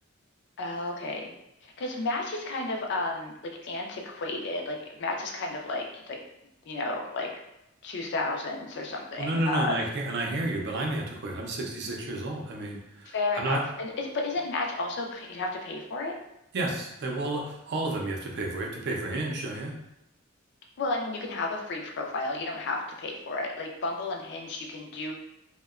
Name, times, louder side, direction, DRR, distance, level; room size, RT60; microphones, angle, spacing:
voice 1, 0.6-1.3 1.6-3.3 3.6-6.2 6.7-7.3 7.8-9.8 13.1-16.1 20.8-25.1, left 2 dB, 60° left, 1 dB, 0.4 m, -32 dB
voice 2, 9.2-13.6 16.5-19.7, right 2 dB, 55° right, 0 dB, 0.5 m, -31 dB
2.8 x 2.1 x 2.3 m, 0.86 s
head